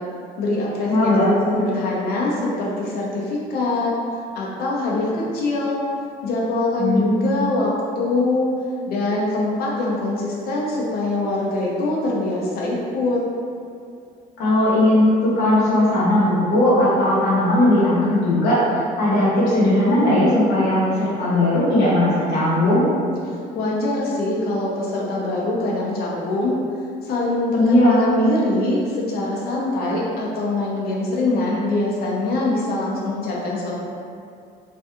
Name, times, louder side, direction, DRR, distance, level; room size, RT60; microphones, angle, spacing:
voice 1, 0.4-3.9 4.3-5.8 6.2-8.5 8.9-13.2 23.3-26.6 27.0-33.7, left 2 dB, 65° left, -4 dB, 0.6 m, -23 dB
voice 2, 0.9-1.3 6.8-7.1 14.4-18.6 19.0-22.8 27.6-28.0, left 1 dB, 85° left, -8 dB, 1.0 m, -18 dB
2.6 x 2.3 x 2.5 m, 2.4 s
cardioid pair, 110°, 17 cm